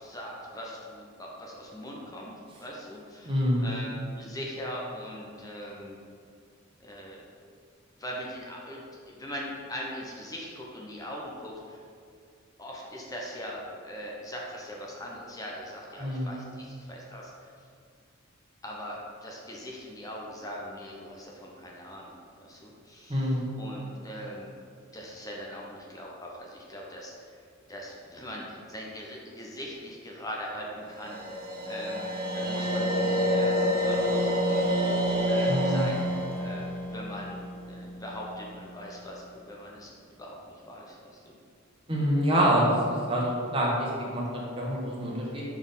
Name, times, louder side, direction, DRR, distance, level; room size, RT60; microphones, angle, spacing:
voice 1, 0.0-2.3 2.6-6.0 6.8-7.5 8.0-11.8 12.6-17.5 18.6-24.5 24.9-27.4 27.7-31.4 31.6-34.6 35.3-41.3, equal, 15° left, -2 dB, 0.8 m, -41 dB
voice 2, 3.2-3.7 16.0-16.3 23.1-23.5 35.5-35.9 41.9-45.4, equal, 25° right, -4 dB, 1.3 m, -26 dB
sound 1, 30.9-38.1, equal, 45° right, 0.9 m, -28 dB
5.9 x 4.4 x 5.4 m, 2.3 s
head